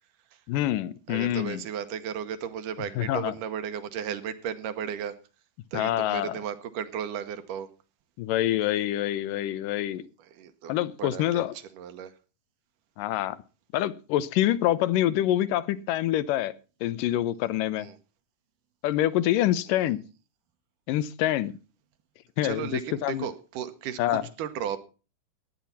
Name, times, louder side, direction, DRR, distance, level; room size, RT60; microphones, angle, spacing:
voice 1, 0.5-1.6 3.0-3.3 5.7-6.4 8.2-10.1 10.7-11.5 13.0-13.4 13.7-16.5 16.8-17.9 18.8-20.0 20.9-21.5 22.4-22.7 23.0-23.3 24.0-24.2, left 13 dB, 80° left, 2.4 m, -26 dB
voice 2, 1.1-5.2 5.7-7.7 10.2-10.7 11.0-12.1 17.8-18.0 19.7-19.9 22.4-24.8, right 8 dB, 75° right, 2.6 m, -35 dB
16.0 x 10.5 x 4.1 m
omnidirectional pair, 3.8 m